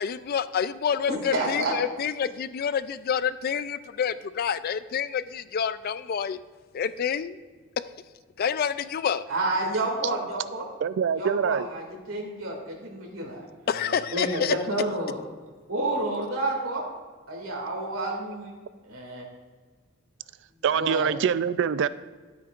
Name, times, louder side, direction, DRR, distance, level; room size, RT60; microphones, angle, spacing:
voice 1, 0.0-6.4 6.7-7.4 8.4-9.2 13.7-14.5, left 7 dB, 50° left, 0.3 m, -28 dB
voice 2, 1.1-1.7 9.3-10.6 11.2-15.2 15.7-16.8 17.3-18.5 18.8-19.3 20.8-21.1, right 2 dB, 85° right, 2.3 m, -30 dB
voice 3, 10.8-11.7 20.6-21.9, right 7 dB, 65° right, 0.4 m, -24 dB
13.0 x 8.6 x 2.5 m
head